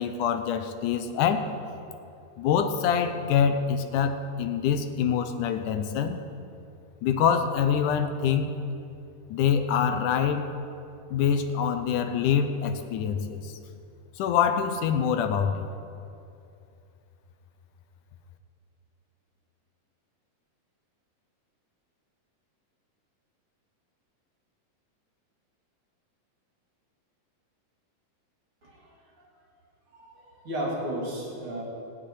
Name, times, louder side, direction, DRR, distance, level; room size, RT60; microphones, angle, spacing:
voice 1, 0.0-1.5 2.4-6.2 7.0-8.5 9.3-10.5 11.1-13.5 14.2-15.7, left 7 dB, 75° left, 8 dB, 2.2 m, -25 dB
voice 2, 28.6-29.0 29.9-31.6, right 1 dB, 40° right, -4 dB, 3.4 m, -34 dB
16.0 x 6.9 x 9.7 m, 2.6 s
omnidirectional pair, 4.0 m